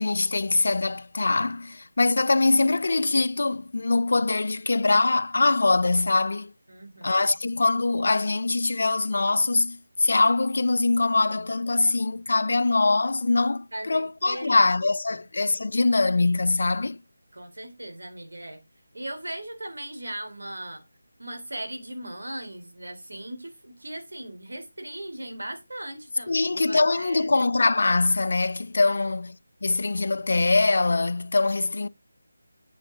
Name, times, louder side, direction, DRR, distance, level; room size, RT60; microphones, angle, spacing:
voice 1, 0.0-6.5 7.0-17.0 26.3-29.4 29.6-31.9, left 3 dB, 60° left, 0.4 m, -23 dB
voice 2, 6.7-7.4 13.7-14.7 15.1-15.2 17.3-18.6 18.9-20.8 21.2-27.3 28.9-29.0, right 1 dB, 85° right, 3.2 m, -38 dB
8.8 x 5.4 x 3.6 m
figure-of-eight pair, 170°, 0 cm